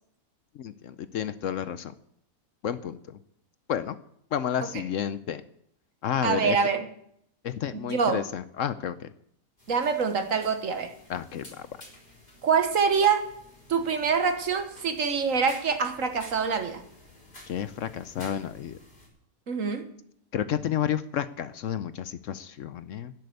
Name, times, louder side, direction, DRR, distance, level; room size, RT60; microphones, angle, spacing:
voice 1, 0.5-1.9 2.6-3.2 3.7-4.0 4.3-5.4 6.0-6.6 7.4-9.1 11.1-11.7 17.5-18.8 20.3-23.1, left 9 dB, 65° left, 0.9 m, -31 dB
voice 2, 6.2-6.9 7.7-8.2 9.7-10.9 12.4-13.3 13.7-16.8 19.5-19.9, right 6 dB, 60° right, 1.6 m, -25 dB
sound 1, 9.6-19.1, left 1 dB, 35° left, 4.0 m, -51 dB
12.0 x 7.8 x 8.3 m
omnidirectional pair, 1.5 m